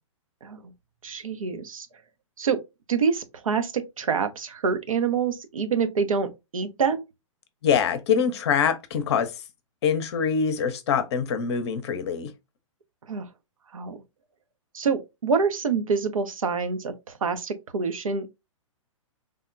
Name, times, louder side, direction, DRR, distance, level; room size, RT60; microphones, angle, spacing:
voice 1, 1.0-1.9 2.4-2.6 2.9-7.0 13.1-13.3 13.7-14.0 14.7-18.3, right 5 dB, 80° right, 0.5 m, -26 dB
voice 2, 7.6-9.3 9.8-12.3, left 7 dB, 55° left, 0.6 m, -24 dB
3.4 x 2.1 x 2.4 m
hypercardioid pair, 120°, 17 cm